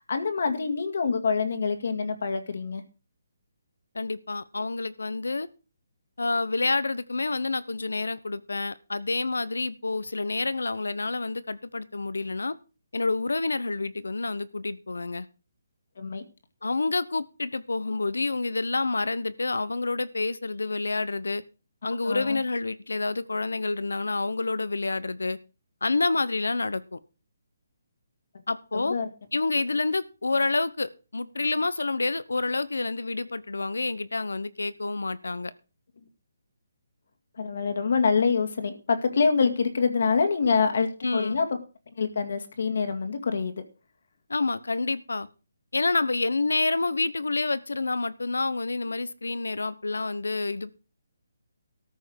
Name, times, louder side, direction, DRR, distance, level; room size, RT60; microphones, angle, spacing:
voice 1, 0.1-2.8 16.0-16.2 22.0-22.4 28.7-29.1 37.4-41.5 42.0-43.6, left 5 dB, 65° left, 7 dB, 2.1 m, -26 dB
voice 2, 3.9-5.5 6.2-12.5 12.9-15.3 16.6-21.4 21.8-25.4 25.8-27.0 28.5-29.0 29.3-35.5 41.0-41.4 44.3-45.3 45.7-50.7, left 3 dB, 85° left, 16 dB, 1.0 m, -28 dB
13.5 x 5.7 x 6.5 m, 0.32 s
figure-of-eight pair, 150°, 0 cm